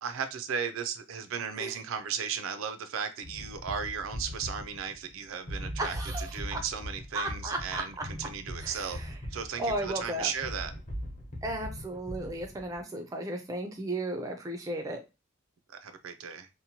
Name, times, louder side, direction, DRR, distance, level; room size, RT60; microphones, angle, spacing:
voice 1, 0.0-9.0 9.3-10.7 15.7-16.5, right 7 dB, 85° right, 0.4 m, -36 dB
sound 1, 3.2-12.8, equal, 35° left, 0.7 m, -40 dB
voice 2, 5.8-6.6 7.1-7.8 8.6-9.1 9.6-10.3 11.4-15.0, right 1 dB, 15° right, 0.3 m, -34 dB
2.8 x 2.1 x 2.7 m
head